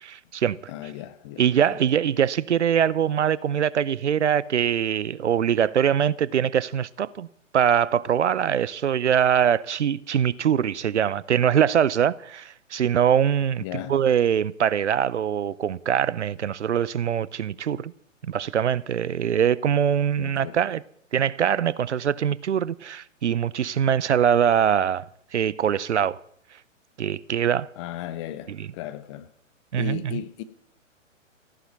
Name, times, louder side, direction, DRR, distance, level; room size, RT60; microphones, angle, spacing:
voice 1, 0.0-0.6 1.4-7.3 7.5-13.6 13.9-17.9 18.3-20.8 21.1-25.1 25.3-26.2 27.0-27.7 28.5-28.7 29.7-30.2, right 9 dB, 60° right, 0.6 m, -23 dB
voice 2, 0.7-1.4 1.7-1.8 13.6-14.0 20.2-20.6 27.8-29.3 29.7-30.4, left 13 dB, 20° left, 0.7 m, -36 dB
14.5 x 11.0 x 7.4 m
figure-of-eight pair, 120°, 39 cm